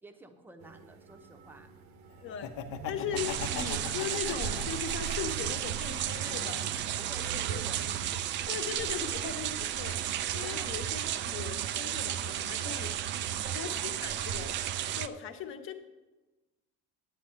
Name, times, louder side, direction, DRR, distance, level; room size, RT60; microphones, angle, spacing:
voice 1, 0.0-1.7 6.4-6.6 7.0-7.9 10.5-10.7 13.4-13.8, right 2 dB, 5° right, 6 dB, 0.8 m, -51 dB
sound 1, 0.6-9.0, right 6 dB, 65° right, 1.1 m, -45 dB
Laughter, 2.3-5.5 5.9-7.0, left 10 dB, 80° left, 1.0 m, -41 dB
voice 2, 2.9-6.6 7.2-7.6 8.5-13.0 13.5-15.7, left 7 dB, 45° left, 6 dB, 1.1 m, -39 dB
sound 2, 3.2-15.1, right 11 dB, 40° right, 0.4 m, -33 dB
10.0 x 9.0 x 5.7 m, 1.1 s
cardioid pair, 170°, 29 cm